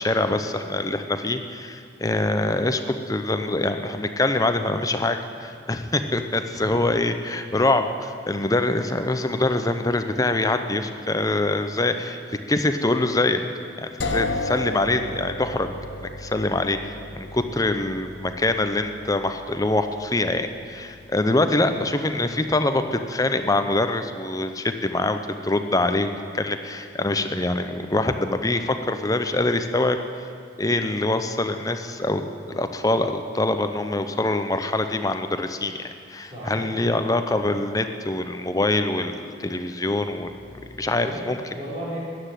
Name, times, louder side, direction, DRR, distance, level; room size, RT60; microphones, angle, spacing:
voice 1, 0.0-12.2 12.5-13.4 13.8-15.7 16.0-30.0 30.6-32.2 32.5-40.3 40.8-41.4, left 2 dB, 20° left, 8 dB, 0.7 m, -24 dB
voice 2, 6.5-6.8 36.2-37.1 40.3-41.2 41.5-42.0, right 1 dB, 30° right, -7 dB, 5.0 m, -36 dB
sound 1, 14.0-23.8, left 2 dB, 65° left, 1.0 m, -35 dB
13.5 x 9.8 x 9.2 m, 2.2 s
head